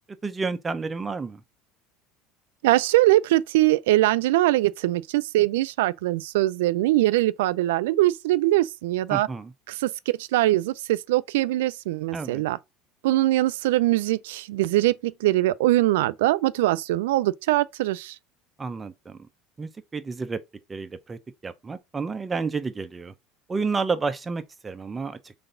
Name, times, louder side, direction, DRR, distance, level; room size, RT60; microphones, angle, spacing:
voice 1, 0.2-1.4 9.1-9.5 12.1-12.4 18.6-19.3 19.6-20.4 20.7-23.1 23.5-25.3, right 4 dB, 20° right, 0.6 m, -30 dB
voice 2, 2.6-9.3 9.7-12.6 13.0-18.2, right 16 dB, 90° right, 0.3 m, -22 dB
4.0 x 3.4 x 3.8 m
supercardioid pair, 115°, 0 cm